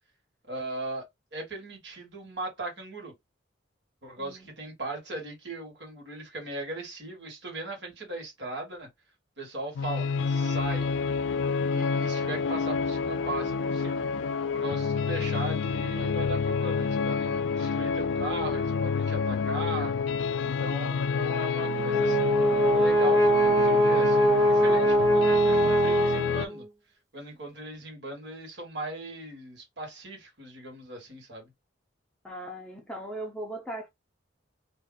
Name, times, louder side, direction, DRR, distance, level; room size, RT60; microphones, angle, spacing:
voice 1, 0.5-1.0 1.3-3.1 4.0-8.9 9.4-10.9 11.7-19.9 20.4-26.6 27.1-31.5, right 2 dB, 65° right, 1.6 m, -38 dB
sound 1, 9.8-26.5, left 5 dB, 75° left, 0.3 m, -28 dB
Brass instrument, 21.6-26.6, right 1 dB, 15° right, 0.9 m, -22 dB
voice 2, 32.2-33.9, right 1 dB, 5° left, 0.5 m, -38 dB
2.6 x 2.4 x 3.8 m
head